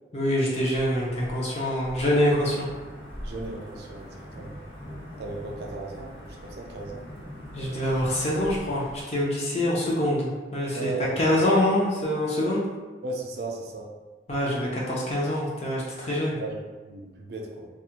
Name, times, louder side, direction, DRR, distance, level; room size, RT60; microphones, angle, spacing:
voice 1, 0.1-2.7 7.5-10.9 11.2-12.6 14.3-16.4, left 1 dB, 35° left, -5 dB, 0.5 m, -25 dB
Wind / Thunder / Rain, 0.8-9.0, equal, 70° left, 1.3 m, -42 dB
voice 2, 3.2-4.6 5.2-7.1 10.7-11.2 13.0-13.9 16.3-17.7, right 3 dB, 60° right, 0 dB, 0.4 m, -36 dB
2.3 x 2.1 x 2.8 m, 1.3 s
head